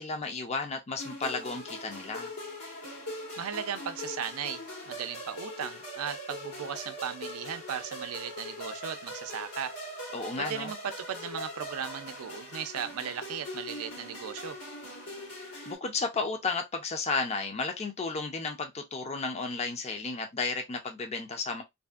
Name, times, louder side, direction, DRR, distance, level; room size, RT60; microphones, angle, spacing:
voice 1, 0.0-2.3 10.1-10.7 15.7-21.6, left 4 dB, 30° left, 0.5 m, -33 dB
sound 1, 1.0-15.7, left 1 dB, 90° left, 1.4 m, -41 dB
voice 2, 3.4-9.7 10.4-14.6, right 8 dB, 85° right, 0.4 m, -37 dB
2.6 x 2.5 x 2.3 m
head